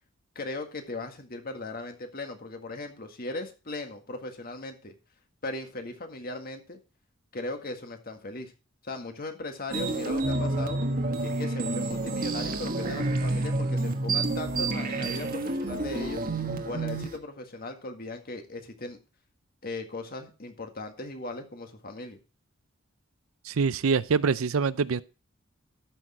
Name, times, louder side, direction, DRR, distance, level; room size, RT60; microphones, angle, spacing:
voice 1, 0.3-4.9 5.4-6.8 7.3-8.5 8.8-10.8 11.2-16.2 16.6-19.0 19.6-22.2, left 2 dB, 45° left, 1.8 m, -38 dB
sound 1, 9.7-17.2, right 2 dB, 45° right, 1.3 m, -29 dB
voice 2, 23.5-25.0, right 5 dB, 75° right, 0.5 m, -25 dB
13.5 x 6.4 x 4.3 m
head